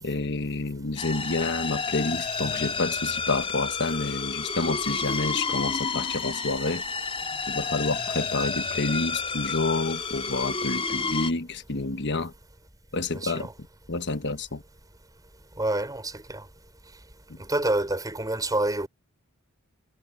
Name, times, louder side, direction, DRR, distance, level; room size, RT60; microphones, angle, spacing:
voice 1, 0.0-6.8 7.5-12.3 12.9-13.5 13.9-14.6, left 3 dB, 55° left, 1.4 m, -29 dB
sound 1, 1.0-11.3, left 4 dB, 25° left, 4.3 m, -30 dB
voice 2, 13.1-13.5 15.6-16.5 17.4-18.9, right 2 dB, 15° right, 5.6 m, -28 dB
head